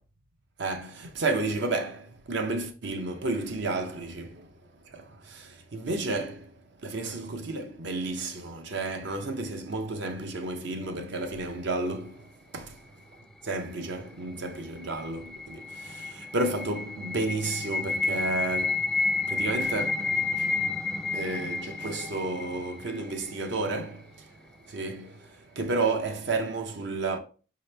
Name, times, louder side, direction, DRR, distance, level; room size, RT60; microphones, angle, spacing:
voice 1, 0.6-12.9 13.4-27.2, right 2 dB, 60° right, 0.6 m, -32 dB
sound 1, 14.6-23.6, left 4 dB, 5° left, 0.3 m, -31 dB
4.9 x 2.9 x 3.2 m
head